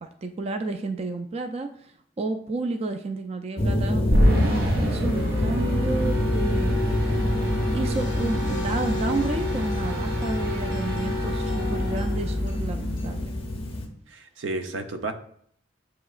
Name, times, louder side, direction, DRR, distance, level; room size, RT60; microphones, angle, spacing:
voice 1, 0.0-6.8 7.7-13.3, right 3 dB, 35° right, 6 dB, 0.3 m, -31 dB
sound 1, 3.6-13.9, left 1 dB, 30° left, 0.6 m, -28 dB
sound 2, 4.1-13.5, left 1 dB, 55° right, 1.2 m, -27 dB
sound 3, 7.9-13.1, left 4 dB, 70° left, 0.5 m, -40 dB
voice 2, 14.1-15.1, right 2 dB, 85° right, 7 dB, 0.5 m, -31 dB
7.4 x 2.9 x 2.4 m, 0.64 s
head